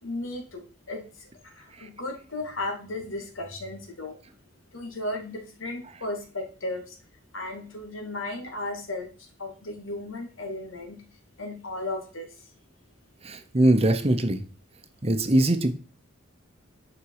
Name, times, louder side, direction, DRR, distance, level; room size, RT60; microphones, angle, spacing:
voice 1, 0.0-4.2 4.7-7.0 7.3-11.0 11.4-12.5, left 2 dB, 80° left, 3 dB, 2.4 m, -35 dB
voice 2, 13.2-14.4 15.0-15.7, right 1 dB, 30° right, 8 dB, 0.9 m, -21 dB
10.0 x 5.2 x 4.8 m, 0.38 s
head